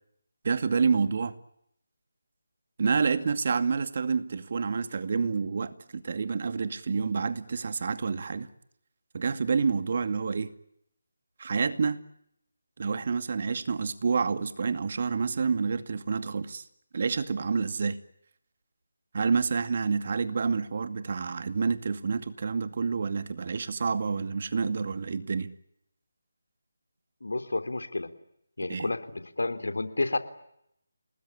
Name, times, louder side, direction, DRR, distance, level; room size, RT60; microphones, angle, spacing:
voice 1, 0.4-1.4 2.8-8.5 9.1-10.5 11.4-12.0 12.8-16.6 16.9-18.0 19.1-25.5 28.7-28.9, right 5 dB, 50° right, 11 dB, 2.3 m, -28 dB
voice 2, 27.2-28.1 28.6-30.2, left 2 dB, 80° left, 10 dB, 3.4 m, -30 dB
29.5 x 20.5 x 9.9 m, 0.77 s
figure-of-eight pair, 160°, 0 cm